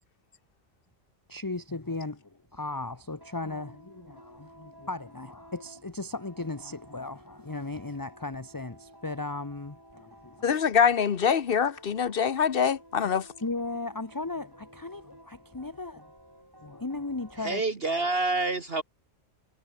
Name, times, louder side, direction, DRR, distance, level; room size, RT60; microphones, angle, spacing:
voice 1, 1.3-10.4 13.4-16.1 16.6-17.6, left 2 dB, 15° left, 1.1 m, -36 dB
sound 1, 2.4-17.6, equal, 15° right, 7.4 m, -54 dB
voice 2, 10.4-13.3, left 7 dB, 50° left, 1.0 m, -24 dB
voice 3, 17.4-18.8, right 3 dB, 45° right, 1.8 m, -27 dB
omnidirectional pair, 1.4 m